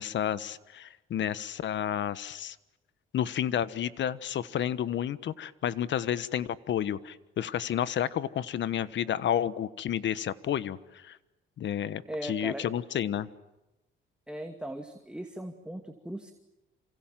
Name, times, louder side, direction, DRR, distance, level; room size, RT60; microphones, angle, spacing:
voice 1, 0.0-2.6 3.1-11.2 11.6-13.3, left 10 dB, 65° left, 15 dB, 1.3 m, -31 dB
voice 2, 12.1-12.7 14.3-16.3, right 1 dB, 5° right, 5 dB, 2.4 m, -38 dB
28.5 x 27.0 x 7.6 m, 0.98 s
cardioid pair, 90°, 20 cm